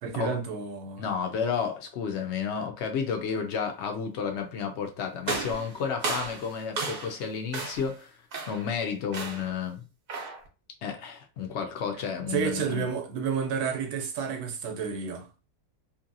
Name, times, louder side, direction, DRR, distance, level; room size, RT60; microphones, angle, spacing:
voice 1, 0.0-1.1 12.3-15.3, right 6 dB, 80° right, 1.1 m, -30 dB
voice 2, 1.0-8.2 8.5-9.8 10.8-12.9, left 6 dB, 70° left, 0.6 m, -31 dB
sound 1, 5.2-7.2 7.5-7.9 8.3-8.7 9.1-9.6 10.1-10.5, right 4 dB, 55° right, 0.6 m, -34 dB
2.7 x 2.6 x 2.6 m
omnidirectional pair, 1.7 m